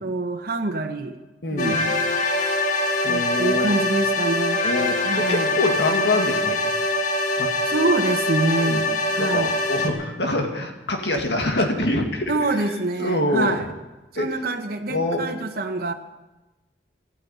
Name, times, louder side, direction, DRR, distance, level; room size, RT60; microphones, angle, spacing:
voice 1, 0.0-1.2 1.5-1.9 3.1-4.6 5.0-5.6 7.7-9.5 12.3-13.7 14.1-15.9, right 2 dB, 55° right, 4 dB, 1.2 m, -25 dB
voice 2, 1.4-1.9 3.0-3.8 4.6-6.7 7.3-7.5 8.6-13.6 14.2-14.3 14.9-15.2, left 2 dB, 70° left, 3 dB, 2.0 m, -25 dB
sound 1, 1.6-9.9, left 1 dB, 45° left, 2.1 m, -23 dB
14.0 x 9.8 x 9.3 m, 1.1 s
head